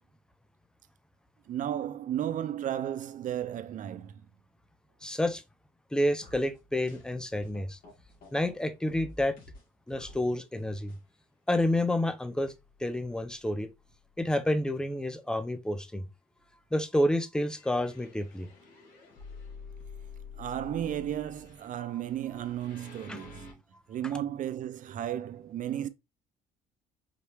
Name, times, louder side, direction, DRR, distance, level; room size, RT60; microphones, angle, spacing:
voice 1, 1.5-4.3 20.4-23.5 23.9-25.9, right 11 dB, 50° right, 0.6 m, -34 dB
voice 2, 5.0-5.4 5.9-7.8 8.3-9.3 9.9-10.9 11.5-12.5 12.8-13.7 14.2-16.1 16.7-18.5 23.1-23.2, left 1 dB, 5° left, 0.6 m, -29 dB
sound 1, 6.2-8.6 8.9-10.2 10.5-11.0 11.5-11.6 12.3-12.4 12.9-13.0 17.4-23.5, left 4 dB, 60° left, 2.3 m, -49 dB
4.9 x 2.8 x 3.2 m
cardioid pair, 110°, 17 cm